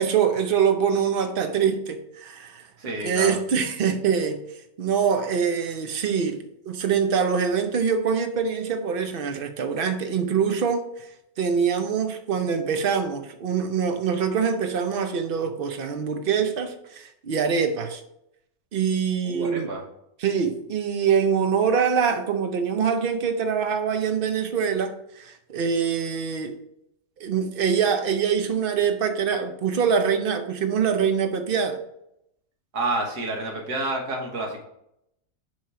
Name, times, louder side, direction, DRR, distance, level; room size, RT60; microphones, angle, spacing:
voice 1, 0.0-2.6 3.0-4.4 4.8-11.1 11.4-18.0 18.7-19.7 20.2-26.6 27.2-31.8, right 6 dB, 55° right, 0.6 m, -24 dB
voice 2, 2.8-3.4 19.2-19.8 32.7-34.6, right 2 dB, 75° right, 1.8 m, -29 dB
7.7 x 3.0 x 5.6 m
omnidirectional pair, 1.7 m